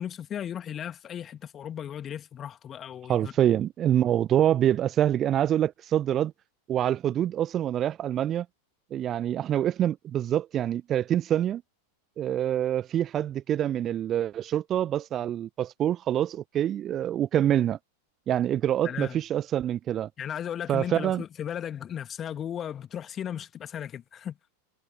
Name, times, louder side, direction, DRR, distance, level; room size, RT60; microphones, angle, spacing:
voice 1, 0.0-3.3 18.8-19.2 20.2-24.4, left 9 dB, 25° left, 2.1 m, -36 dB
voice 2, 3.1-6.3 6.7-8.5 8.9-11.6 12.2-17.8 18.3-20.1 20.7-21.2, right 11 dB, 30° right, 0.9 m, -26 dB
figure-of-eight pair, 90°, 0 cm